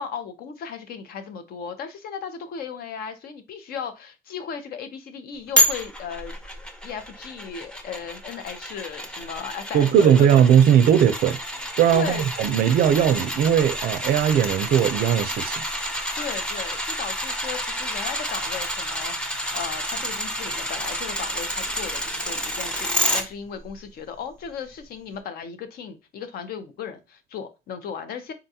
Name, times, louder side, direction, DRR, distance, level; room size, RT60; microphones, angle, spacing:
voice 1, 0.0-6.3 6.8-10.4 11.9-12.2 16.1-28.3, left 7 dB, 65° left, 0.7 m, -36 dB
sound 1, 5.6-23.2 23.7-23.8, equal, 5° left, 0.6 m, -29 dB
voice 2, 9.7-11.4 11.8-15.6, right 9 dB, 65° right, 0.4 m, -18 dB
3.8 x 2.3 x 2.7 m
cardioid pair, 110°, 17 cm